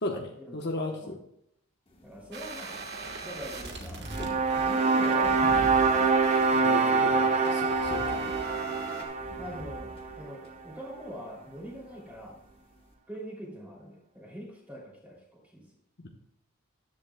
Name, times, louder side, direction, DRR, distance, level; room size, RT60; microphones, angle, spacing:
voice 1, 0.0-1.2 6.5-8.6 16.0-16.1, left 2 dB, 50° left, 1 dB, 1.1 m, -36 dB
sound 1, 1.9-12.9, equal, 25° left, 1.2 m, -45 dB
voice 2, 2.0-2.8 3.2-6.1 9.4-12.4 13.1-15.6, equal, 5° right, -3 dB, 2.9 m, -43 dB
sound 2, 2.3-9.0, right 4 dB, 50° right, 1.4 m, -40 dB
sound 3, 4.1-10.3, right 4 dB, 30° right, 0.6 m, -25 dB
13.5 x 10.5 x 2.3 m, 0.75 s
head